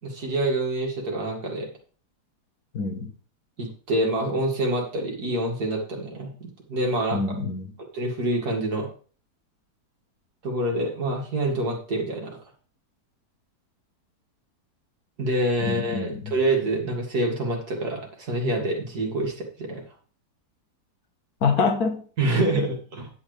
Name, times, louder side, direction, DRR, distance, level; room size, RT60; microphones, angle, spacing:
voice 1, 0.0-1.7 3.6-7.2 7.9-8.9 10.4-12.4 15.2-19.8 22.2-23.1, right 1 dB, 65° right, 2.8 m, -26 dB
voice 2, 2.7-3.1 7.1-7.7 15.6-16.3 21.4-22.0, left 4 dB, 60° left, 1.7 m, -26 dB
10.5 x 8.7 x 3.4 m
omnidirectional pair, 1.8 m